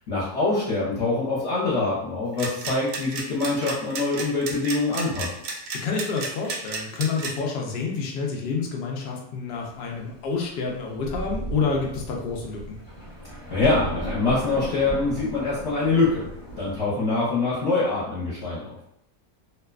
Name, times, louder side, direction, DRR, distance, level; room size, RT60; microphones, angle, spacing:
voice 1, 0.1-5.3 13.5-16.3 16.6-18.7, left 3 dB, 55° left, -10 dB, 0.9 m, -24 dB
sound 1, 2.3-7.3, right 4 dB, 80° right, 1.1 m, -32 dB
voice 2, 5.7-12.8, left 4 dB, 75° left, 0 dB, 0.5 m, -28 dB
Thunder, 10.7-10.8 11.0-16.8, right 1 dB, 25° left, 1.0 m, -35 dB
2.5 x 2.2 x 2.3 m, 0.75 s
omnidirectional pair, 1.6 m